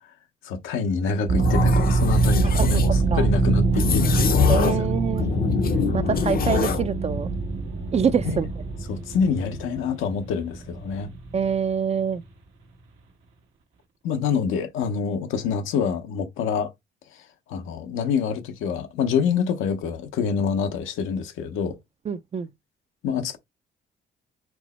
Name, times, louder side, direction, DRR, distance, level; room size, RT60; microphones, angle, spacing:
voice 1, 0.4-4.9 8.2-8.5 8.9-11.1 14.0-16.7 17.5-21.8 23.0-23.4, left 6 dB, 90° left, 0.8 m, -26 dB
sound 1, 1.3-12.3, right 3 dB, 75° right, 1.2 m, -24 dB
sound 2, 1.4-2.9 3.7-4.9 5.2-6.9, left 8 dB, 45° left, 0.6 m, -24 dB
voice 2, 4.5-5.3 5.9-7.3 7.9-8.5 11.3-12.2 22.1-22.5, right 6 dB, 30° right, 0.4 m, -25 dB
4.6 x 2.1 x 4.1 m
cardioid pair, 90°, 20 cm